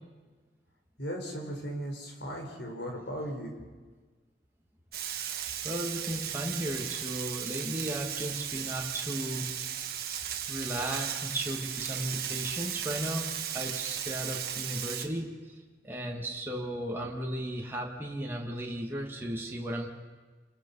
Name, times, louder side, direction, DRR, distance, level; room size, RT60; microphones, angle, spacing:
voice 1, 1.0-3.5, equal, 70° left, 2 dB, 4.6 m, -37 dB
Frying (food), 4.9-15.1, right 9 dB, 55° right, 1.8 m, -36 dB
voice 2, 5.6-9.5 10.5-15.3 15.8-19.9, right 1 dB, 10° right, -1 dB, 1.9 m, -35 dB
28.5 x 21.0 x 5.5 m, 1.4 s
head